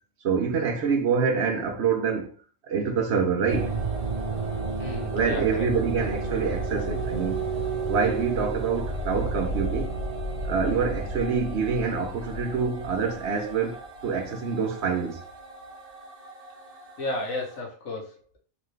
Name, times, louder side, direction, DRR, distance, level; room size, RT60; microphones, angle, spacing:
voice 1, 0.2-2.3 2.7-3.8 5.1-7.4 7.9-9.9 10.4-15.2, right 5 dB, 60° right, 1.0 m, -26 dB
sound 1, 3.5-17.6, right 3 dB, 40° right, 0.6 m, -32 dB
voice 2, 4.8-5.7 17.0-18.4, left 2 dB, 80° left, 1.5 m, -33 dB
3.9 x 3.1 x 3.2 m
omnidirectional pair, 1.4 m